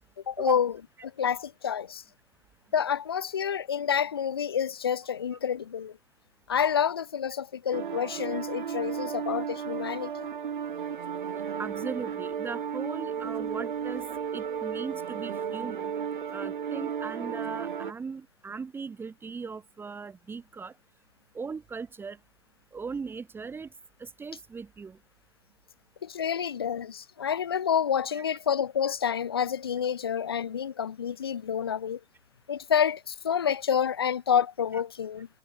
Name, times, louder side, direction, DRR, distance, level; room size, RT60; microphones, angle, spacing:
voice 1, 0.3-0.7 1.0-2.0 2.7-5.9 6.5-10.3 26.0-32.0 32.5-35.3, left 8 dB, 25° left, 0.4 m, -28 dB
sound 1, 7.7-17.9, right 7 dB, 55° right, 3.2 m, -34 dB
voice 2, 11.6-14.1 14.3-15.9 16.3-20.7 21.3-22.2 22.7-23.7 24.0-25.0 28.1-28.2 34.7-34.8, right 5 dB, 5° right, 3.8 m, -38 dB
figure-of-eight pair, 130°, 30 cm